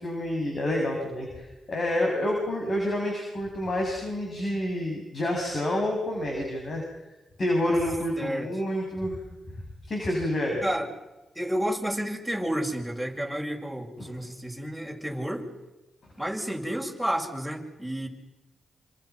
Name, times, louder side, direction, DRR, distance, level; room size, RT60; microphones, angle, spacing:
voice 1, 0.0-6.8 7.4-9.2 9.9-10.6 14.0-14.1, left 1 dB, 50° left, 0 dB, 7.5 m, -28 dB
voice 2, 8.2-8.5 10.6-10.9 11.4-15.5 16.2-18.1, equal, ahead, 2 dB, 7.1 m, -31 dB
29.0 x 27.0 x 6.1 m, 1.1 s
supercardioid pair, 40°, 0 cm